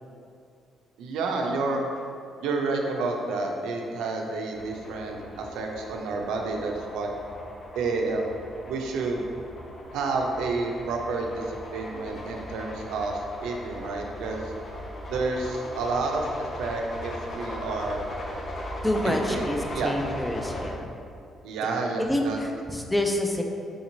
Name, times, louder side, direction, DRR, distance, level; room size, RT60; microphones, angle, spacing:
voice 1, 1.0-1.8 2.4-7.1 7.8-8.3 8.6-9.3 9.9-14.5 15.1-18.0 19.0-19.5 19.7-20.0 21.4-22.4, right 3 dB, 90° right, 1 dB, 0.4 m, -30 dB
sound 1, 4.5-20.7, left 1 dB, 50° left, 0.6 m, -38 dB
voice 2, 18.8-20.9 22.0-23.4, left 1 dB, 10° left, 2 dB, 0.4 m, -27 dB
4.9 x 2.9 x 2.6 m, 2.4 s
cardioid pair, 90°, 0 cm